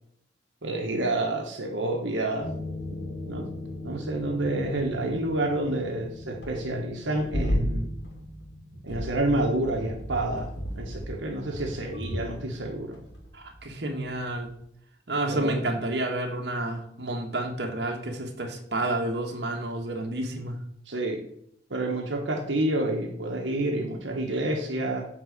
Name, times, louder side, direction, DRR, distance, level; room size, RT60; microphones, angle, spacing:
voice 1, 0.6-2.5 3.3-3.5 3.8-7.9 8.8-10.5 10.8-13.0 15.3-15.6 20.9-21.2 21.7-25.1, right 1 dB, 85° right, 1 dB, 1.3 m, -28 dB
sound 1, 2.4-13.9 14.2-14.5, equal, 70° left, 1.9 m, -35 dB
voice 2, 13.3-14.5 15.1-20.6, right 1 dB, 65° right, 1 dB, 1.5 m, -30 dB
8.8 x 4.0 x 6.6 m, 0.71 s
head